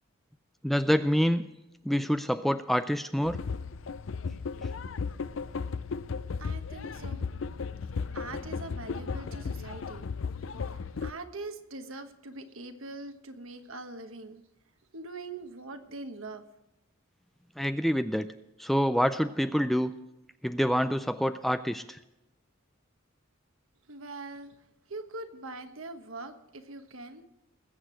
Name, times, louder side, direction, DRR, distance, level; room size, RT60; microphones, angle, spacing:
voice 1, 0.6-1.4 1.9-3.4 17.6-18.3 18.6-19.9 20.4-22.0, equal, ahead, 10 dB, 0.3 m, -26 dB
sound 1, 3.2-11.1, left 5 dB, 65° left, 0.5 m, -35 dB
voice 2, 6.4-7.3 8.1-10.1 10.7-14.4 14.9-16.4 23.9-24.6 24.9-27.3, right 2 dB, 70° right, 7 dB, 1.2 m, -42 dB
20.5 x 8.2 x 4.5 m, 0.96 s
head